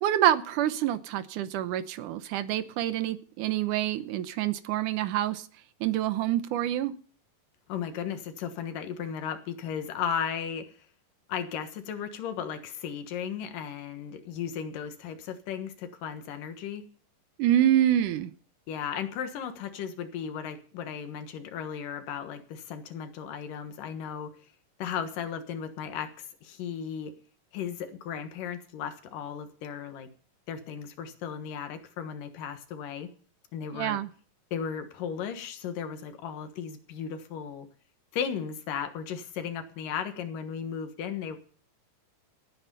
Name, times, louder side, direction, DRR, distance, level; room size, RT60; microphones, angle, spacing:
voice 1, 0.0-5.5 5.8-6.9 17.4-18.3 33.7-34.1, right 12 dB, 75° right, 13 dB, 2.3 m, -26 dB
voice 2, 7.7-10.7 11.3-16.9 18.7-24.3 24.8-27.1 27.5-30.1 30.5-33.1 33.5-34.0 34.5-37.7 38.1-41.4, left 7 dB, 80° left, 8 dB, 3.1 m, -35 dB
17.5 x 8.9 x 5.5 m, 0.44 s
omnidirectional pair, 3.8 m